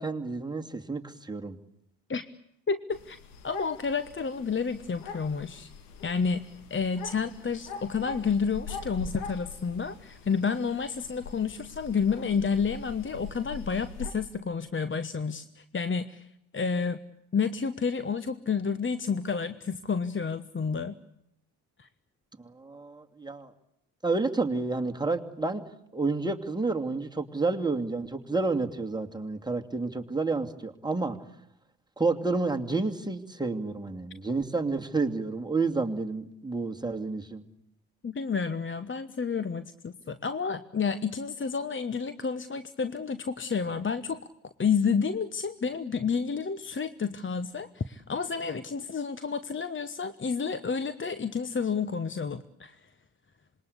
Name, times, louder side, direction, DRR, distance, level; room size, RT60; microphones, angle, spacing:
voice 1, 0.0-1.6 22.5-23.5 24.0-25.6 25.9-31.2 32.0-37.4, right 3 dB, 10° right, 3 dB, 2.5 m, -30 dB
voice 2, 2.7-3.2 3.4-5.7 6.0-6.4 6.7-16.3 16.5-17.0 17.3-20.9 21.8-21.9 38.0-44.2 44.6-52.8, left 5 dB, 25° left, 12 dB, 1.2 m, -30 dB
sound 1, 2.9-14.1, left 5 dB, 80° left, 2.6 m, -43 dB
26.5 x 21.5 x 8.4 m, 0.80 s
hypercardioid pair, 55°, 45 cm